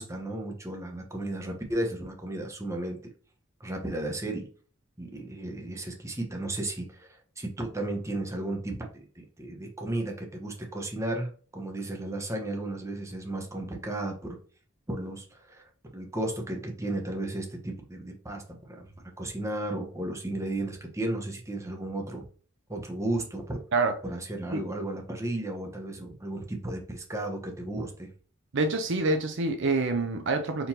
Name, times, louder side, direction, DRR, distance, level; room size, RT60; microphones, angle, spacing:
voice 1, 0.0-3.0 3.6-4.5 5.0-7.1 7.4-14.4 14.9-15.6 15.9-18.9 19.2-22.2 22.7-23.6 24.0-28.1, right 1 dB, 15° right, 0.9 m, -34 dB
voice 2, 28.5-30.7, right 3 dB, 60° right, 0.5 m, -26 dB
4.6 x 3.8 x 2.7 m
head